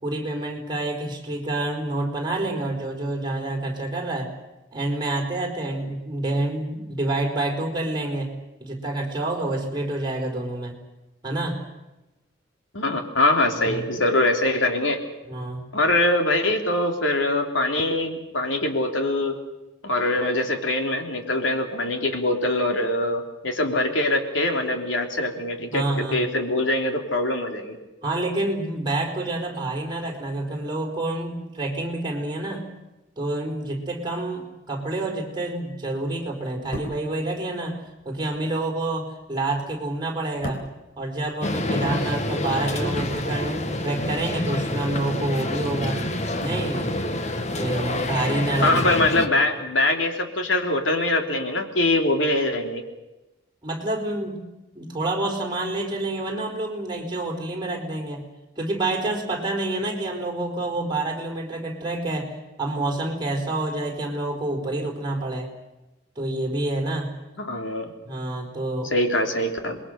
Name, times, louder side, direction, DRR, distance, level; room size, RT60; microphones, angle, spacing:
voice 1, 0.0-4.3 4.7-8.3 8.6-10.8 11.2-11.6 13.7-13.8 15.2-15.7 25.7-26.2 28.0-32.7 33.2-40.6 41.0-46.0 46.4-46.9 47.5-49.0 53.6-54.4 54.7-58.2 58.6-62.3 62.6-65.5 66.2-67.1 68.0-68.9, right 2 dB, 25° right, 1 dB, 4.6 m, -28 dB
voice 2, 12.7-15.0 15.7-19.4 19.8-27.8 48.6-52.8 67.4-67.9 68.9-69.8, left 1 dB, 80° left, 4 dB, 3.3 m, -23 dB
sound 1, 36.5-41.8 42.1-43.9 44.2-44.4, equal, 60° left, 4.1 m, -41 dB
sound 2, 41.4-49.3, left 1 dB, 35° left, 1.4 m, -27 dB
28.0 x 22.0 x 6.6 m, 1.0 s
head